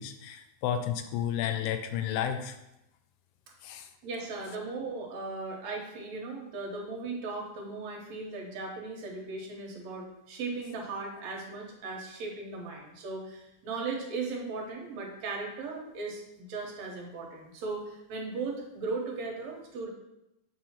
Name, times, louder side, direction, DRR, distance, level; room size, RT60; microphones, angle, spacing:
voice 1, 0.0-2.6 3.6-3.9, left 9 dB, 80° left, 8 dB, 1.9 m, -32 dB
voice 2, 4.0-19.9, right 3 dB, 65° right, 0 dB, 2.2 m, -37 dB
7.0 x 2.7 x 5.7 m, 0.89 s
omnidirectional pair, 3.5 m